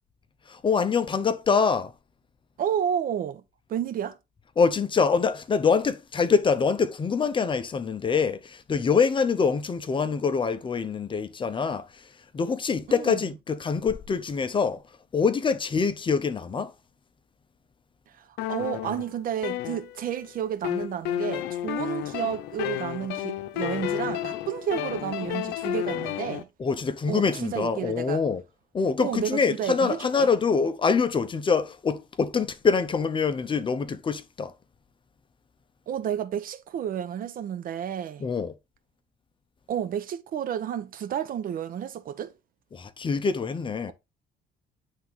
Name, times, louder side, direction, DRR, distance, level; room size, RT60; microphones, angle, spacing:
voice 1, 0.5-1.9 4.6-14.8 15.1-16.7 26.6-28.4 28.7-34.5 38.2-38.5 42.7-43.9, left 5 dB, 30° left, 0.7 m, -25 dB
voice 2, 2.6-3.4 3.7-4.2 12.9-13.2 18.1-26.5 27.1-28.2 29.0-30.3 35.9-38.3 39.7-42.3, right 9 dB, 55° right, 0.9 m, -31 dB
sound 1, 18.4-20.2 20.6-26.4, left 12 dB, 80° left, 0.7 m, -31 dB
9.4 x 3.6 x 3.7 m
cardioid pair, 110°, 17 cm